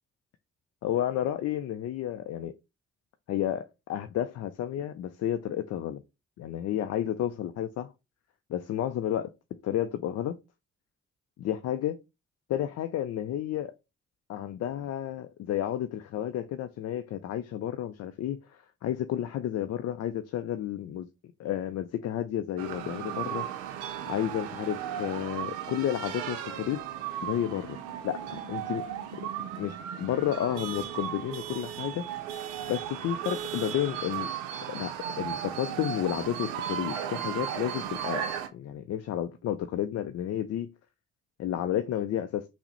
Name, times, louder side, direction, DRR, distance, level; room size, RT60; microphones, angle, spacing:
voice 1, 0.8-2.5 3.3-6.0 6.4-7.9 8.5-9.3 9.6-10.4 11.4-12.0 12.5-13.7 14.3-21.1 21.4-23.5 24.1-26.8 27.2-27.8 28.0-28.8 29.6-32.0 32.7-34.3 34.7-38.3 38.5-40.7 41.4-42.5, left 11 dB, 55° left, 0.4 m, -31 dB
sound 1, 22.6-38.5, right 10 dB, 90° right, 0.5 m, -36 dB
3.5 x 2.1 x 4.3 m
hypercardioid pair, 45°, 31 cm